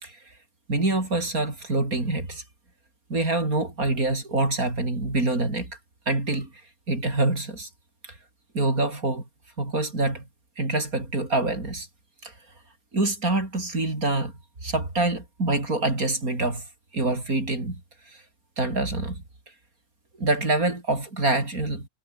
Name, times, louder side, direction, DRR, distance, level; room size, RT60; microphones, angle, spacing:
voice 1, 0.7-2.4 3.1-5.7 6.1-6.5 6.9-7.7 8.5-9.2 9.6-10.3 10.6-11.9 12.2-12.3 12.9-14.3 14.6-16.7 16.9-17.8 18.1-18.2 18.6-19.2 20.2-21.9, right 2 dB, 75° right, 6.2 m, -25 dB
omnidirectional pair, 1.5 m